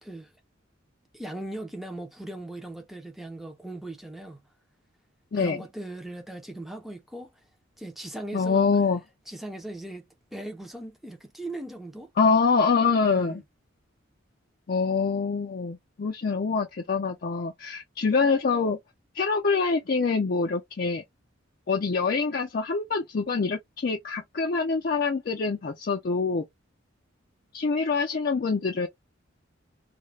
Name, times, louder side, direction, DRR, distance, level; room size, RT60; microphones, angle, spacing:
voice 1, 0.0-0.3 1.1-4.4 5.4-7.3 7.8-8.7 9.3-10.1 10.3-12.1 13.0-13.4, right 1 dB, ahead, 0.5 m, -39 dB
voice 2, 8.3-9.0 12.2-13.4 14.7-18.8 19.1-21.0 21.7-26.4 27.5-28.9, left 4 dB, 50° left, 0.5 m, -25 dB
2.3 x 2.1 x 3.1 m
head